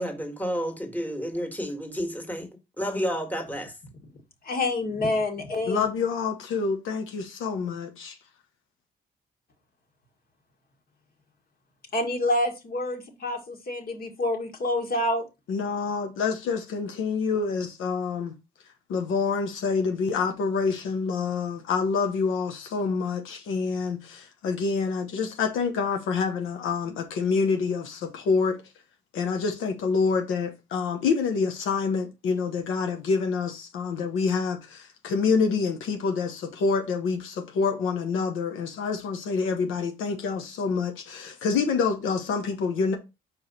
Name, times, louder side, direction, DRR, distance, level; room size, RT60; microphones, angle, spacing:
voice 1, 0.0-2.4 2.8-3.7, equal, 10° left, 1.6 m, -30 dB
voice 2, 4.4-5.9 11.9-15.2, left 2 dB, 50° left, 1.9 m, -27 dB
voice 3, 5.7-8.1 15.5-18.3 18.9-28.6 29.1-43.0, left 5 dB, 85° left, 1.0 m, -27 dB
4.9 x 4.7 x 4.1 m
cardioid pair, 90°, 20 cm